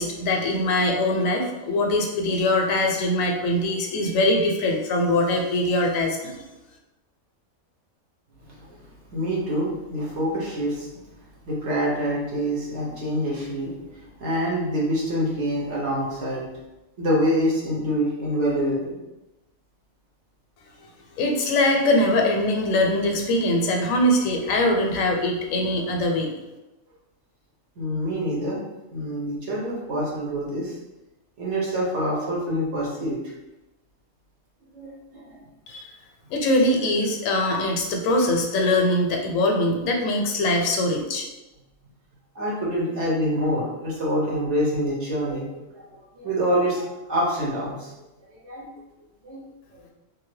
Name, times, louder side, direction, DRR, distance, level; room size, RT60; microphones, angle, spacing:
voice 1, 0.0-6.4 21.2-26.3 35.7-35.9 36.3-41.2, left 1 dB, 75° left, 2 dB, 1.0 m, -22 dB
voice 2, 9.1-10.9 11.5-16.4 17.0-19.0 27.8-28.6 28.9-30.8 31.4-33.2 34.7-35.4 42.3-47.9 48.3-48.7 49.2-49.4 49.7-49.8, equal, 60° right, -5 dB, 1.1 m, -26 dB
2.7 x 2.5 x 3.2 m, 1.0 s
omnidirectional pair, 1.4 m